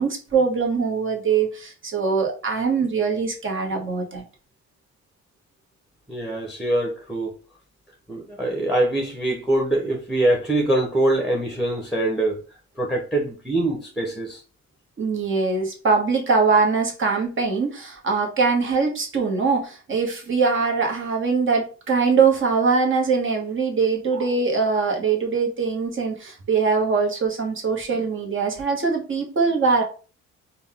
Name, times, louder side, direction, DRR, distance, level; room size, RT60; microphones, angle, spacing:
voice 1, 0.0-4.2 15.0-29.8, right 5 dB, 40° right, 1.4 m, -22 dB
voice 2, 6.1-7.3 8.1-12.4 12.8-14.4 24.1-24.3, right 1 dB, ahead, 1.0 m, -23 dB
4.0 x 2.4 x 3.6 m
cardioid pair, 90°, 30 cm